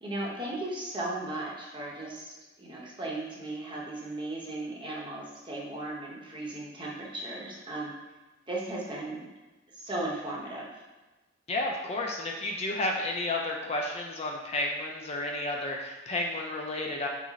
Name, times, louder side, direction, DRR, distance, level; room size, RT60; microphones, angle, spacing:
voice 1, 0.0-7.9 8.5-9.2 9.7-10.8, right 2 dB, 25° right, -4 dB, 0.8 m, -36 dB
voice 2, 11.5-17.1, left 2 dB, 30° left, 0 dB, 0.4 m, -32 dB
6.1 x 2.1 x 4.0 m, 1.2 s
head